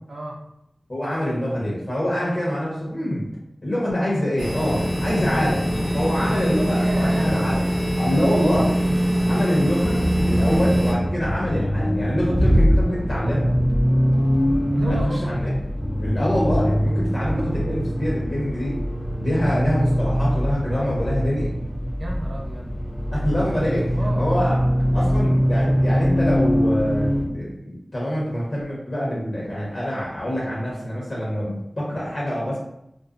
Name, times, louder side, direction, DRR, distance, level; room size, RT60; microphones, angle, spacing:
voice 1, 0.1-0.4 6.8-7.3 14.6-15.2 22.0-22.8 24.0-24.3, right 1 dB, 80° right, -2 dB, 0.5 m, -32 dB
voice 2, 0.9-3.3 3.6-7.6 7.9-13.5 14.9-15.5 16.0-18.8 19.2-21.5 23.1-24.6 24.9-32.6, equal, 55° left, -6 dB, 1.0 m, -25 dB
sound 1, 4.4-10.9, equal, 85° left, 0.7 m, -22 dB
Accelerating revving vroom, 9.8-27.3, equal, 30° left, 0.4 m, -22 dB
2.5 x 2.0 x 2.5 m, 0.80 s
wide cardioid pair, 75°, 0 cm